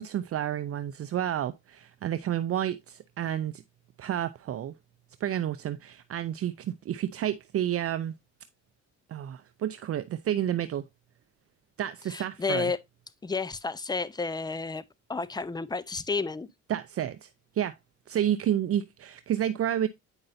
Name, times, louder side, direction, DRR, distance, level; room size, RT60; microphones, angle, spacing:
voice 1, 0.0-3.6 4.0-4.7 5.2-8.1 9.1-10.8 11.8-12.7 16.7-17.3 17.5-17.7 18.1-19.9, right 11 dB, 50° right, 0.5 m, -30 dB
voice 2, 12.1-12.8 13.2-14.8 15.1-16.5, left 4 dB, 15° left, 0.6 m, -31 dB
8.9 x 5.3 x 2.6 m
cardioid pair, 90°, 30 cm